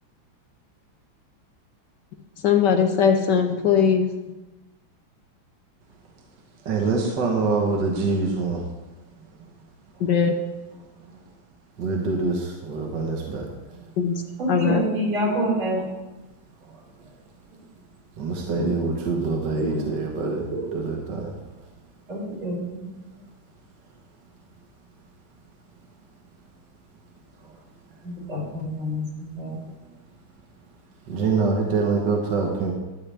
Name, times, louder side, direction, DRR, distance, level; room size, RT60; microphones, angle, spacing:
voice 1, 2.4-4.1 10.0-10.3 14.0-14.1 14.5-14.9, left 7 dB, 65° left, 4 dB, 1.3 m, -20 dB
voice 2, 6.7-8.6 11.8-13.5 18.2-20.4 20.7-21.3 31.1-32.7, right 4 dB, 60° right, -1 dB, 1.8 m, -25 dB
voice 3, 14.4-15.8 18.5-18.7 19.0-19.1 19.5-20.8 22.1-22.9 28.0-29.6, right 1 dB, 80° right, -8 dB, 5.3 m, -28 dB
12.5 x 8.6 x 3.4 m, 1.1 s
omnidirectional pair, 2.3 m